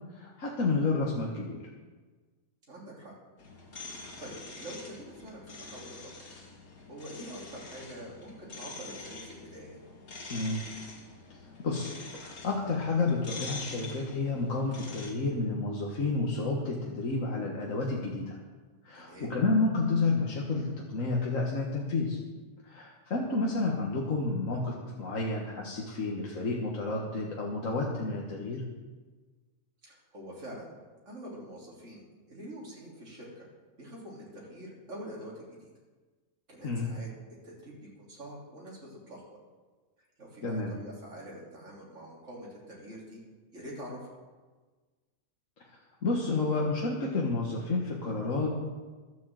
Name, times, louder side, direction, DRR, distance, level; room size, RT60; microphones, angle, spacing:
voice 1, 0.2-1.6 10.3-10.6 11.6-18.4 18.8-22.2 22.6-28.6 36.6-36.9 40.4-40.7 46.0-48.6, left 3 dB, 65° left, -2 dB, 1.9 m, -30 dB
voice 2, 2.7-3.1 4.2-6.3 6.9-9.8 18.9-19.3 29.8-30.7 31.1-33.5 33.8-35.7 36.5-37.1 37.4-39.2 40.2-43.2 43.5-44.1, right 1 dB, 60° right, -5 dB, 3.6 m, -45 dB
sound 1, 3.4-15.1, left 3 dB, 85° left, 2.5 m, -45 dB
12.0 x 8.3 x 7.6 m, 1.3 s
omnidirectional pair, 1.5 m